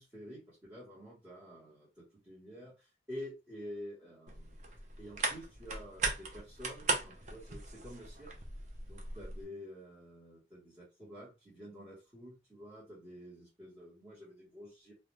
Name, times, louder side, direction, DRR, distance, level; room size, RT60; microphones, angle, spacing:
voice 1, 0.0-4.6 5.0-8.3 8.9-14.9, equal, 15° right, -8 dB, 1.0 m, -49 dB
sound 1, 4.3-9.4, right 3 dB, 40° right, 0.5 m, -38 dB
2.3 x 2.1 x 2.9 m, 0.29 s
head